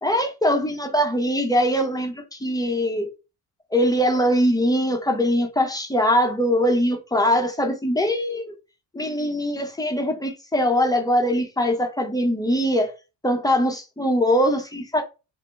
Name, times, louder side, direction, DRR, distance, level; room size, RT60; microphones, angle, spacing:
voice 1, 0.0-3.1 3.7-8.6 8.9-12.9 13.2-15.0, equal, 10° left, 0.8 m, -22 dB
2.8 x 2.1 x 2.3 m
supercardioid pair, 65°, 44 cm